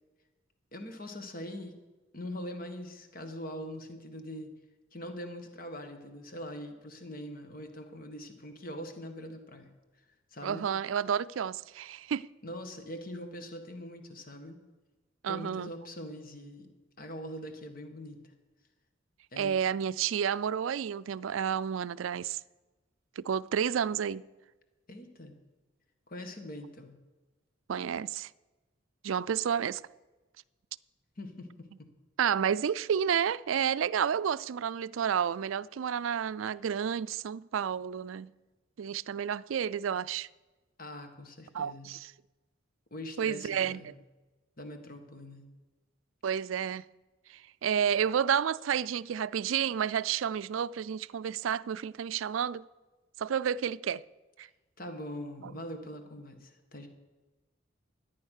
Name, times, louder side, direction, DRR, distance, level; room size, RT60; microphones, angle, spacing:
voice 1, 0.7-1.8 2.1-4.5 4.9-9.7 10.3-10.6 12.4-14.6 15.3-16.7 17.0-18.2 19.3-19.5 24.9-25.4 26.1-27.0 31.2-31.9 40.8-41.9 42.9-43.9 44.6-45.5 54.8-56.9, left 1 dB, 45° left, 1.7 m, -42 dB
voice 2, 10.4-12.3 15.2-15.7 19.4-22.4 23.2-24.2 27.7-28.3 29.0-29.8 32.2-38.3 38.8-40.3 41.5-42.1 43.2-43.9 46.2-46.8 47.6-52.6 53.2-54.0 54.4-54.5 55.4-55.5, right 8 dB, 90° right, 0.4 m, -30 dB
14.0 x 9.9 x 6.5 m
head